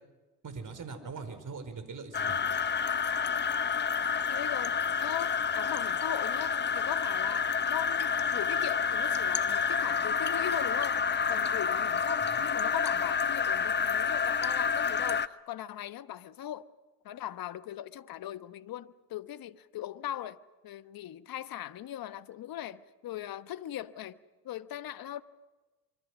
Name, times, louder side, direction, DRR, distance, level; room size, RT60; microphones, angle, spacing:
voice 1, 0.4-2.4 12.2-12.5, right 4 dB, 40° right, 4.8 m, -41 dB
sound 1, 2.1-15.3, left 6 dB, 25° left, 0.8 m, -29 dB
voice 2, 4.3-4.7 5.0-16.6 17.0-24.2 24.4-25.2, left 12 dB, 50° left, 1.2 m, -39 dB
25.5 x 24.5 x 6.2 m
hypercardioid pair, 65°, 47 cm